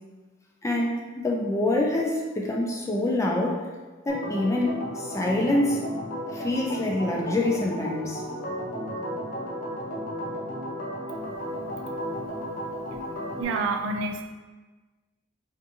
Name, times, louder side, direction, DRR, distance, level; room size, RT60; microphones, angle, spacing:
voice 1, 0.6-3.6 4.1-5.8 6.3-8.2, left 1 dB, 15° left, -1 dB, 0.3 m, -26 dB
Organ, 4.1-13.4, equal, 45° left, 0.7 m, -34 dB
voice 2, 13.4-14.3, right 3 dB, 75° right, 4 dB, 0.3 m, -28 dB
2.5 x 2.5 x 2.6 m, 1.3 s
head